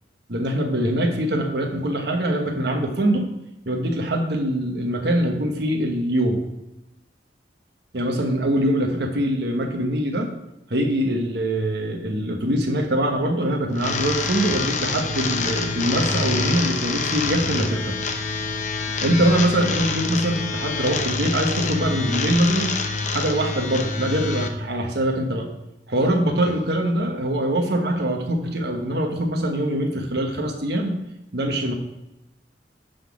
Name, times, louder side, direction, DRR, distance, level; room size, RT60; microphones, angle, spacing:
voice 1, 0.3-3.3 3.7-6.4 7.9-10.3 10.7-17.9 19.0-22.8 23.1-25.5 25.9-31.0 31.3-31.7, right 1 dB, 65° right, 3 dB, 1.2 m, -23 dB
sound 1, 13.8-24.5, left 4 dB, 45° left, 0.7 m, -26 dB
10.0 x 3.9 x 4.8 m, 0.93 s
head